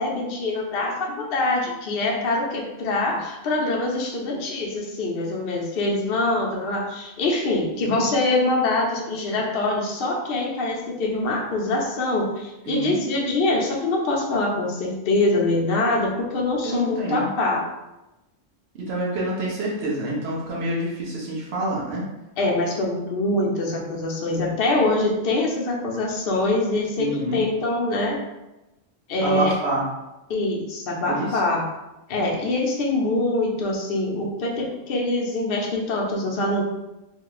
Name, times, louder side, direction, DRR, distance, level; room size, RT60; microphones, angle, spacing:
voice 1, 0.0-17.7 22.4-28.2 29.1-29.5 30.3-31.7 32.1-36.6, left 2 dB, 55° left, -1 dB, 0.8 m, -24 dB
voice 2, 16.6-17.3 18.8-22.0 27.0-27.4 29.2-29.8 31.1-31.3, right 1 dB, 55° right, -4 dB, 1.1 m, -27 dB
3.1 x 2.2 x 3.8 m, 0.98 s
omnidirectional pair, 1.3 m